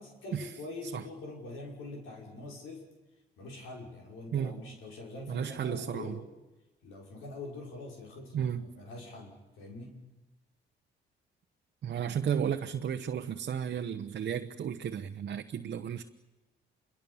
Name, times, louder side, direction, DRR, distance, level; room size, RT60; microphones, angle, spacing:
voice 1, 0.0-2.9 3.4-6.2 6.8-10.0, left 2 dB, 90° left, 6.0 m, -44 dB
voice 2, 5.3-6.2 8.3-8.7 11.8-16.0, right 8 dB, 55° right, 1.1 m, -33 dB
26.5 x 23.0 x 7.2 m
cardioid pair, 90°, 20 cm